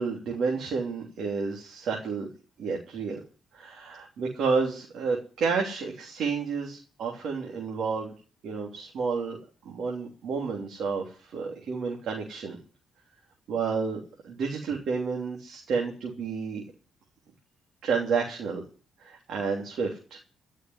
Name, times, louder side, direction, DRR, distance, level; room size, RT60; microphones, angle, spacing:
voice 1, 0.0-2.3 2.6-3.2 3.5-8.1 8.4-9.4 9.7-12.6 13.5-16.6 17.8-18.6 19.0-20.2, right 5 dB, 70° right, -1 dB, 3.4 m, -30 dB
15.5 x 6.5 x 9.7 m, 0.38 s
cardioid pair, 90°, 0 cm